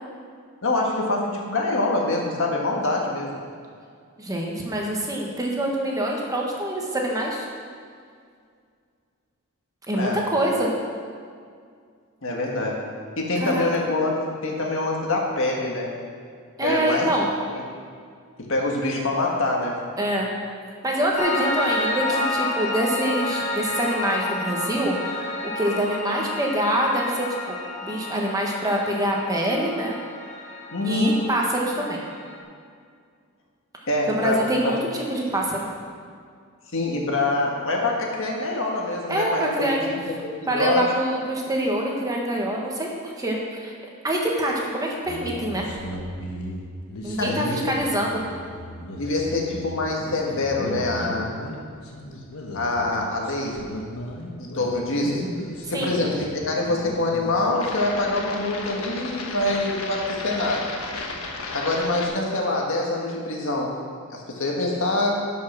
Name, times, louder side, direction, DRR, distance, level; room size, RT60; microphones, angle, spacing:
voice 1, 0.6-3.4 9.9-10.2 12.2-12.8 13.2-15.9 16.6-17.1 17.5-17.6 18.4-19.8 30.7-31.2 33.9-34.7 36.7-39.8 40.1-40.2 40.5-40.8 47.2-47.7 49.0-51.3 52.5-53.6 54.4-55.2 55.7-60.7 61.5-63.7 64.1-65.3, left 2 dB, 65° left, -1 dB, 1.6 m, -25 dB
voice 2, 4.2-7.4 9.9-10.7 13.4-13.7 16.6-17.3 20.0-20.3 20.8-25.2 25.5-29.9 30.8-32.0 34.1-35.7 39.1-39.9 40.5-43.7 44.0-45.7 47.0-48.2 55.7-56.0, right 1 dB, 15° right, -2 dB, 1.3 m, -25 dB
Piano, 21.2-32.4, left 2 dB, 35° left, 1.2 m, -30 dB
sound 1, 45.1-62.1, left 1 dB, 80° left, 1.3 m, -35 dB
11.0 x 5.6 x 6.1 m, 2.2 s
head